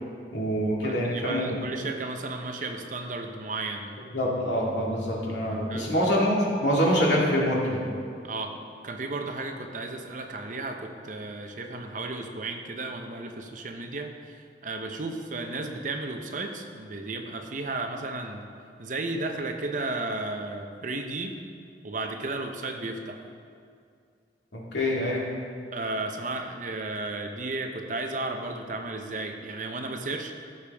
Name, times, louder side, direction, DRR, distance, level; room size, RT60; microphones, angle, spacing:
voice 1, 0.3-1.6 4.1-7.8 24.5-25.2, equal, 85° left, -4 dB, 2.2 m, -25 dB
voice 2, 0.8-4.0 5.7-6.2 8.2-8.6 8.8-18.5 18.8-21.4 21.8-23.2 25.7-30.3, right 2 dB, 45° right, 4 dB, 0.8 m, -34 dB
14.5 x 7.0 x 3.5 m, 2.3 s
head